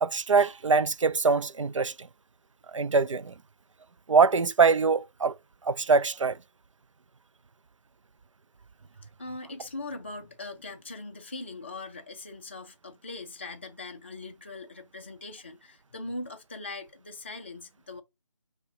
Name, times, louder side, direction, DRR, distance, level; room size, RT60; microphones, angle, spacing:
voice 1, 0.0-2.1 2.7-3.3 4.1-5.4 5.6-6.4, right 5 dB, 80° right, 0.4 m, -23 dB
voice 2, 9.0-18.0, left 2 dB, 25° left, 0.4 m, -41 dB
5.2 x 2.1 x 3.5 m
figure-of-eight pair, 160°, 16 cm